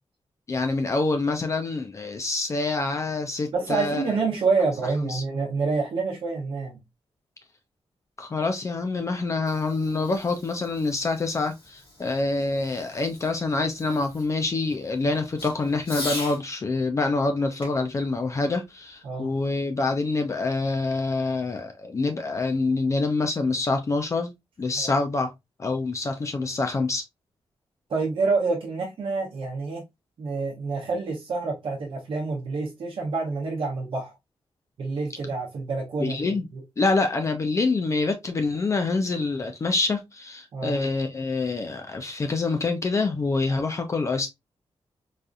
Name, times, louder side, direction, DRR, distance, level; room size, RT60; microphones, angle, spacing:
voice 1, 0.5-4.2 5.0-5.2 8.2-24.3 24.6-25.3 25.6-27.0 36.0-36.4 36.8-44.3, left 3 dB, 30° left, 0.4 m, -26 dB
voice 2, 3.5-6.8 15.1-15.2 19.0-19.3 24.8-25.0 27.9-29.8 30.2-34.1 34.8-36.6 40.5-40.8, right 4 dB, 65° right, 0.8 m, -27 dB
Fireworks, 9.3-16.4 17.6-19.2, left 2 dB, 65° left, 2.0 m, -42 dB
4.0 x 2.4 x 2.4 m
wide cardioid pair, 170°, 10 cm